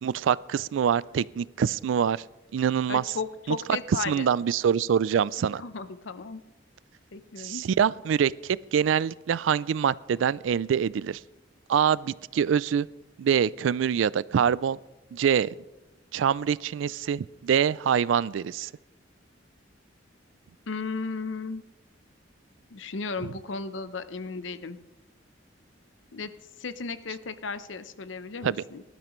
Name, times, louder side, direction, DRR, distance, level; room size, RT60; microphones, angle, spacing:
voice 1, 0.0-2.2 2.5-3.0 3.5-3.6 4.1-5.6 7.4-11.2 11.7-12.9 13.2-14.8 15.1-15.5 16.1-18.7 23.2-23.3 28.4-28.6, right 8 dB, 80° right, 21 dB, 0.3 m, -25 dB
voice 2, 2.9-4.3 5.6-6.4 7.1-7.6 20.7-21.6 22.7-24.8 26.1-26.3 26.6-28.8, left 4 dB, 75° left, 12 dB, 0.7 m, -35 dB
19.5 x 12.0 x 3.1 m, 1.0 s
head